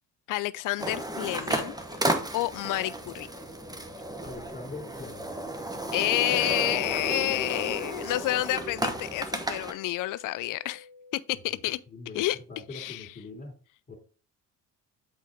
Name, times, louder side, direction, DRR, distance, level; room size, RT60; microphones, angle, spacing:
voice 1, 0.3-1.8 2.3-3.3 5.9-10.9 11.1-11.8 12.1-12.4 12.7-13.1, left 16 dB, 45° left, 0.4 m, -29 dB
sound 1, 0.8-9.7, right 1 dB, 10° right, 1.1 m, -33 dB
sound 2, 1.1-11.1, left 3 dB, 45° right, 2.7 m, -52 dB
voice 2, 4.2-5.3 11.9-12.2 12.5-13.5 13.9-14.0, left 3 dB, 20° left, 2.7 m, -42 dB
8.2 x 4.6 x 3.7 m
hypercardioid pair, 55°, 49 cm